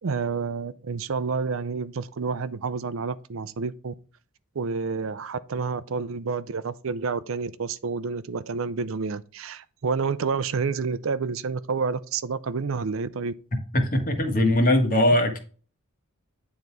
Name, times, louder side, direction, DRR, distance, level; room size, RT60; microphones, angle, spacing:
voice 1, 0.0-3.9 4.5-13.3, right 5 dB, 65° right, 0.5 m, -29 dB
voice 2, 13.7-15.4, left 1 dB, 40° left, 1.6 m, -21 dB
9.3 x 4.0 x 4.7 m
head